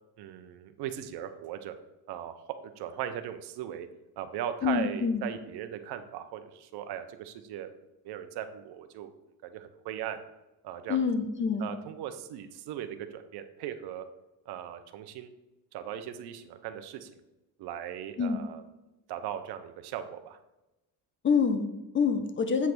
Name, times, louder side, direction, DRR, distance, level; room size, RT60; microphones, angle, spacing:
voice 1, 0.2-1.7 2.1-3.9 4.2-7.7 8.0-9.1 9.4-10.2 10.6-11.0 11.6-14.0 14.5-15.3 15.7-17.2 17.6-18.6 19.1-20.4, right 10 dB, 70° right, 9 dB, 0.8 m, -38 dB
voice 2, 4.6-5.2 10.9-11.8 18.2-18.4 21.2-22.7, left 5 dB, 30° left, 8 dB, 0.8 m, -27 dB
8.3 x 3.2 x 6.1 m, 0.97 s
cardioid pair, 120°, 40 cm